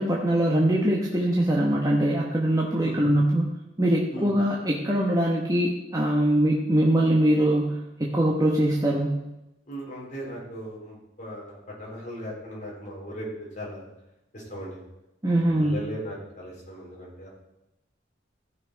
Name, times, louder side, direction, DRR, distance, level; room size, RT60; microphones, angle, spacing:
voice 1, 0.0-3.5 3.8-9.2 15.2-15.8, right 1 dB, 20° right, -3 dB, 1.2 m, -22 dB
voice 2, 9.7-13.8 14.3-14.8 15.3-17.3, equal, 45° left, -4 dB, 4.3 m, -38 dB
14.5 x 6.1 x 4.6 m, 0.92 s
head